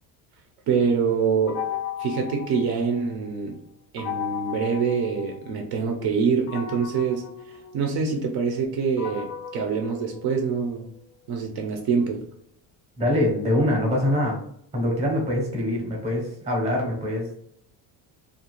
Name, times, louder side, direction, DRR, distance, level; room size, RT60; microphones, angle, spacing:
voice 1, 0.7-1.6 2.0-3.6 3.9-10.8 11.3-12.2, right 5 dB, 60° right, 2 dB, 0.5 m, -25 dB
sound 1, 1.5-3.3 4.0-5.8 6.5-10.7, left 9 dB, 40° left, 0.4 m, -36 dB
voice 2, 13.0-14.4 14.7-17.4, left 1 dB, 15° right, -1 dB, 0.7 m, -24 dB
2.5 x 2.1 x 2.9 m, 0.71 s
cardioid pair, 165°, 44 cm